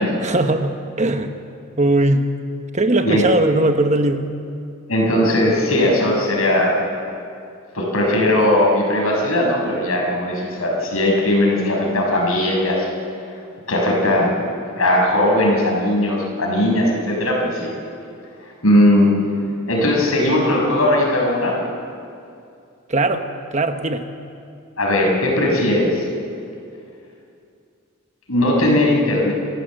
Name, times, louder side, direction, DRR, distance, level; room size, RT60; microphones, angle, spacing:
voice 1, 0.2-1.3 1.8-2.2 2.7-4.2 22.9-24.0, right 2 dB, 35° right, 7 dB, 1.1 m, -19 dB
voice 2, 4.9-6.8 7.7-12.9 13.7-14.4 14.8-17.7 18.6-19.2 19.7-21.5 24.8-26.1 28.3-29.3, left 1 dB, 80° left, -1 dB, 6.2 m, -18 dB
29.0 x 15.0 x 7.6 m, 2.5 s
head